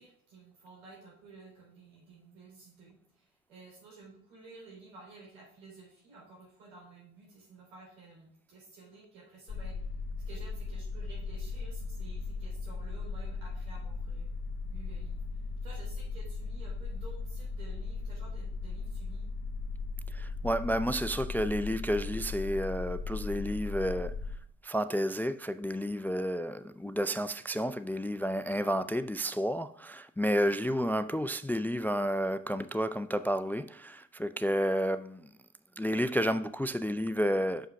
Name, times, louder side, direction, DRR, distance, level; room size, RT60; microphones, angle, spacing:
voice 1, 0.0-9.8 10.3-14.3 14.7-15.2 15.6-19.3, right 3 dB, 85° right, 3.4 m, -53 dB
sound 1, 9.5-24.4, left 4 dB, 40° left, 1.0 m, -37 dB
voice 2, 20.1-24.2 24.6-35.3 35.8-37.7, equal, 5° left, 0.3 m, -31 dB
6.2 x 5.6 x 5.7 m
hypercardioid pair, 40°, 38 cm